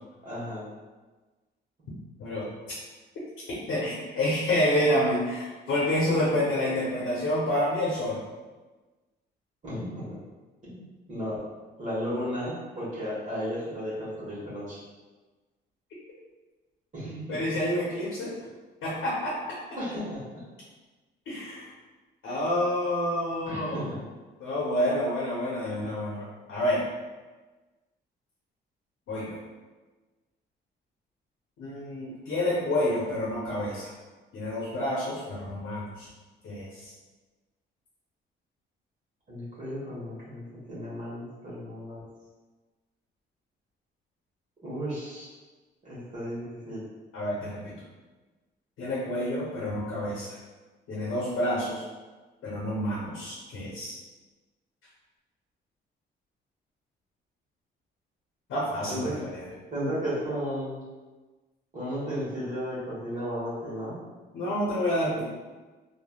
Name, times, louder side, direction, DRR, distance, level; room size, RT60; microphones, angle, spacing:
voice 1, 0.2-0.6 9.6-10.1 10.6-10.8 11.1-11.4 11.8-14.8 16.9-17.4 19.8-20.4 23.5-23.9 39.3-42.0 44.6-45.3 45.8-46.8 58.9-59.1 59.7-60.8 61.7-64.0, equal, 40° right, -8 dB, 1.1 m, -34 dB
voice 2, 2.2-2.5 3.5-8.2 17.3-18.3 18.8-19.3 21.3-21.7 22.2-23.9 24.4-26.8 29.1-29.4 31.6-33.9 34.3-36.1 36.4-36.9 47.1-47.8 48.8-50.4 50.9-51.8 52.4-53.9 58.5-59.5 64.3-65.2, left 1 dB, 75° left, -5 dB, 0.7 m, -28 dB
3.1 x 2.2 x 2.2 m, 1.3 s
cardioid pair, 90°, 20 cm